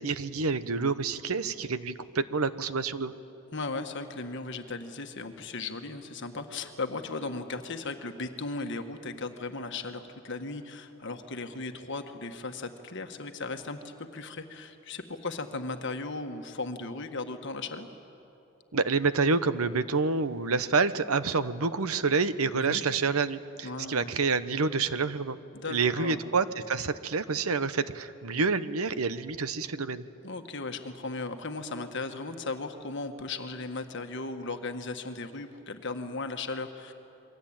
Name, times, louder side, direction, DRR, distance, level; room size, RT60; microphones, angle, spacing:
voice 1, 0.0-3.1 18.7-25.4 25.7-30.0, right 4 dB, 80° right, 13 dB, 1.0 m, -28 dB
voice 2, 3.5-17.9 22.5-22.8 23.6-24.2 25.5-26.2 30.2-36.9, left 3 dB, 55° left, 6 dB, 1.7 m, -36 dB
28.0 x 23.0 x 8.9 m, 2.9 s
head